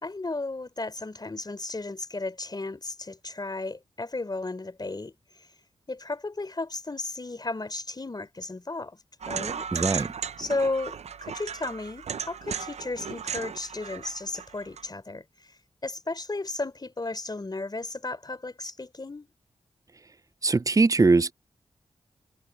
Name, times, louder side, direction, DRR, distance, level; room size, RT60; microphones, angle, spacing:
voice 1, 0.0-5.5 5.9-9.0 9.3-9.7 10.4-19.3, left 2 dB, 35° left, 3.6 m, -34 dB
sound 1, 9.2-14.8, right 7 dB, 70° right, 0.6 m, -35 dB
voice 2, 9.7-10.1 20.4-21.3, right 3 dB, 30° right, 0.5 m, -21 dB
cardioid pair, 45°, 12 cm